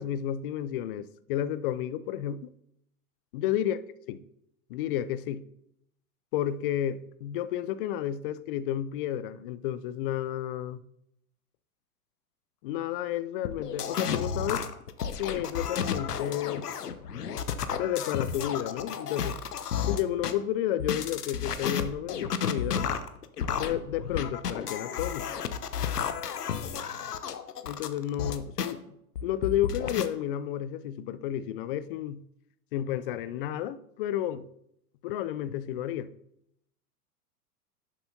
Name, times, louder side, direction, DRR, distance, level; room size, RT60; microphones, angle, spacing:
voice 1, 0.0-2.5 3.3-3.8 4.1-4.2 4.7-5.4 6.3-10.8 12.6-14.7 15.2-16.7 17.8-19.4 19.9-22.9 23.6-25.3 27.6-29.0 29.2-32.2 32.7-34.5 35.0-36.1, left 11 dB, 40° left, 0.4 m, -31 dB
sound 1, 13.4-20.3 20.8-28.7 29.2-30.1, left 7 dB, 80° left, 0.9 m, -32 dB
11.0 x 7.2 x 2.8 m
figure-of-eight pair, 100°, 46 cm